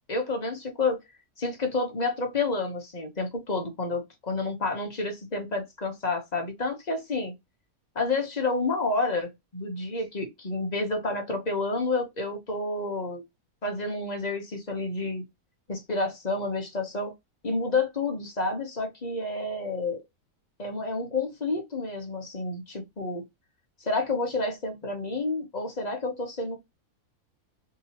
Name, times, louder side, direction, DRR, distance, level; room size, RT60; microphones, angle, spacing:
voice 1, 0.1-1.0 1.4-7.3 7.9-13.2 13.6-15.2 15.7-17.1 17.4-20.0 20.6-23.2 23.8-26.6, left 3 dB, 30° left, 1.0 m, -29 dB
3.7 x 2.7 x 2.9 m
omnidirectional pair, 1.6 m